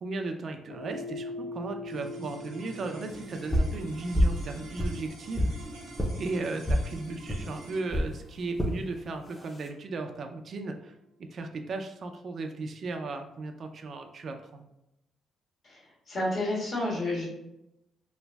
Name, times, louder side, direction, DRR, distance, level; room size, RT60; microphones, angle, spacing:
voice 1, 0.0-5.5 6.2-11.0 11.3-14.6, right 3 dB, 55° right, 5 dB, 0.3 m, -36 dB
sound 1, 0.7-9.1, left 2 dB, 75° left, 0.7 m, -44 dB
sound 2, 1.9-12.3, right 2 dB, 90° right, 1.0 m, -48 dB
sound 3, 3.5-3.8 4.1-4.4 4.8-5.6 6.0-6.1 6.7-6.9 7.3-7.4 7.9-8.1 8.6-8.8 9.3-9.7, equal, 10° left, 0.5 m, -26 dB
voice 2, 15.6-17.3, left 1 dB, 50° left, -5 dB, 1.4 m, -30 dB
3.1 x 2.5 x 2.2 m, 0.86 s
cardioid pair, 90°, 0 cm